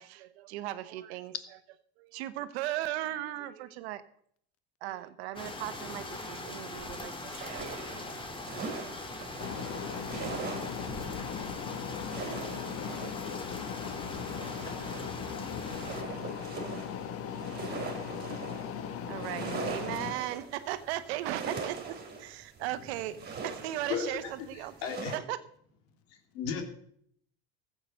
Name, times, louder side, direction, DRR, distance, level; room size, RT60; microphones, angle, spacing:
voice 1, 0.0-1.3 2.0-4.0 4.8-8.0 19.1-23.2 23.4-25.4, right 14 dB, 80° right, 1.1 m, -37 dB
sound 1, 5.4-16.0, left 2 dB, 15° left, 2.2 m, -41 dB
sound 2, 7.3-25.2, right 4 dB, 30° right, 3.1 m, -42 dB
voice 2, 9.4-20.1, left 8 dB, 45° left, 1.8 m, -38 dB
voice 3, 23.9-24.3 24.8-25.1 26.3-26.6, left 7 dB, 80° left, 2.9 m, -33 dB
14.5 x 7.9 x 6.4 m
supercardioid pair, 105°, 31 cm